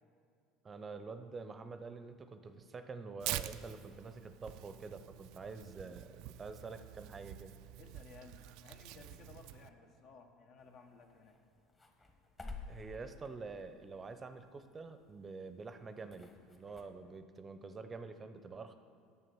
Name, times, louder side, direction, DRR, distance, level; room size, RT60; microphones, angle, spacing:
voice 1, 0.6-7.5 12.7-18.7, right 4 dB, 30° right, 10 dB, 0.6 m, -47 dB
Tearing, 3.2-9.7, right 14 dB, 65° right, 0.3 m, -46 dB
voice 2, 7.8-11.4, left 4 dB, 55° left, 4 dB, 1.1 m, -57 dB
sound 1, 10.6-16.8, left 3 dB, 25° left, 1.4 m, -54 dB
9.2 x 6.8 x 6.1 m, 2.4 s
hypercardioid pair, 80°, 0 cm